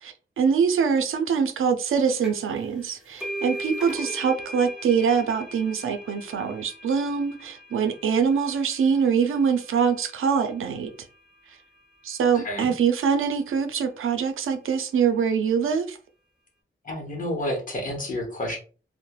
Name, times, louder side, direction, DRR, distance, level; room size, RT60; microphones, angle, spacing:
voice 1, 0.0-10.9 12.0-16.0, right 6 dB, 80° right, 0.4 m, -24 dB
sound 1, 2.2-2.5 2.8-10.1, right 1 dB, 5° right, 0.9 m, -39 dB
voice 2, 12.3-12.7 16.8-18.6, left 1 dB, 40° left, 0.8 m, -30 dB
3.1 x 2.0 x 2.2 m
wide cardioid pair, 140°, 21 cm